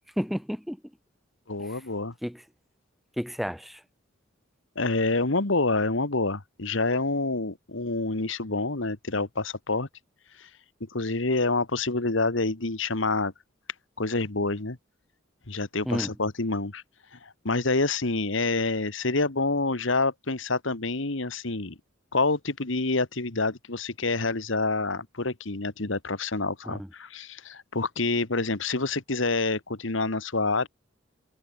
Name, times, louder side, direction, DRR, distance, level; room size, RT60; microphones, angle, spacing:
voice 1, 0.2-0.8 1.6-1.8 2.2-2.4 3.2-3.8 15.9-16.1 26.7-26.9, equal, ahead, 1.3 m, -31 dB
voice 2, 1.5-2.1 4.8-9.9 10.4-10.5 10.8-13.3 14.0-14.8 15.5-16.8 17.1-21.8 22.1-30.7, left 3 dB, 70° left, 1.7 m, -27 dB
head